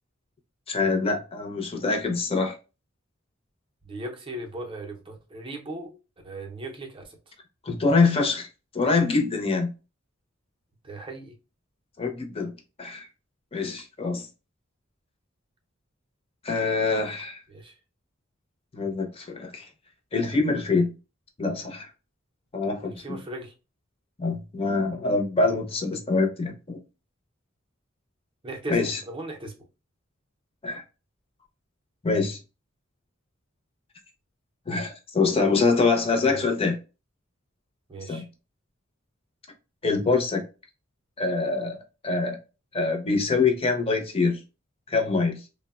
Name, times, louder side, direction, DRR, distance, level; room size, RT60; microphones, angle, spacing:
voice 1, 0.7-2.6 7.6-8.5 8.7-9.7 12.0-12.5 12.8-13.1 13.5-14.3 16.4-17.4 18.7-19.7 20.1-20.9 21.4-21.9 22.5-23.2 24.2-26.8 28.7-29.0 30.6-30.8 32.0-32.4 34.7-36.8 38.1-38.2 39.8-40.4 41.2-41.8 42.0-42.4 42.7-44.4 44.9-45.4, left 3 dB, 30° left, 0.6 m, -24 dB
voice 2, 3.8-6.0 6.2-7.2 10.8-11.4 17.5-17.8 22.8-23.5 28.4-29.6 36.2-36.5 37.9-38.2, right 2 dB, 25° right, 0.5 m, -38 dB
3.2 x 2.0 x 2.3 m
head